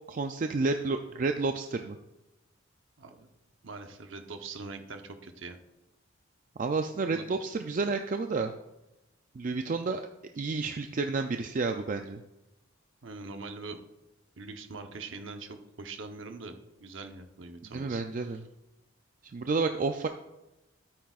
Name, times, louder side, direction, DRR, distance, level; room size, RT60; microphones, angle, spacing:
voice 1, 0.1-2.0 6.6-8.5 9.3-10.0 10.4-12.2 17.7-18.4 19.3-20.1, right 3 dB, 40° right, 6 dB, 0.4 m, -30 dB
voice 2, 3.0-3.3 3.6-5.6 7.1-7.2 13.0-13.8 14.4-18.3, right 3 dB, 65° right, 6 dB, 0.9 m, -43 dB
12.5 x 8.7 x 2.4 m, 0.95 s
head